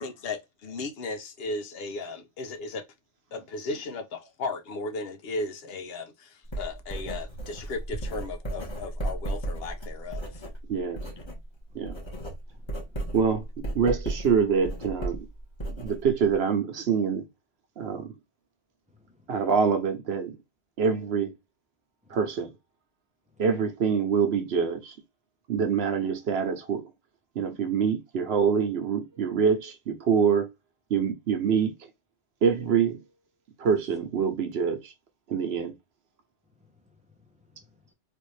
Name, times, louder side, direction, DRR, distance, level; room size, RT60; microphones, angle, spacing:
voice 1, 0.0-2.8 3.3-10.4, left 3 dB, 70° left, 0.8 m, -36 dB
Writing, 6.5-11.4 11.7-16.3, right 1 dB, 25° left, 1.3 m, -35 dB
voice 2, 10.7-11.1 11.7-12.0 13.1-15.3 15.7-17.3 17.8-18.2 19.3-20.4 20.8-21.3 22.1-22.5 23.4-25.0 25.5-26.9 27.3-30.5 30.9-31.9 32.4-33.0 33.6-34.9 35.3-35.8, right 6 dB, 75° right, 1.0 m, -25 dB
voice 3, 12.5-13.1 18.9-19.3 22.0-22.2 36.6-37.9, left 4 dB, 10° right, 0.6 m, -62 dB
3.3 x 2.6 x 3.1 m
omnidirectional pair, 1.1 m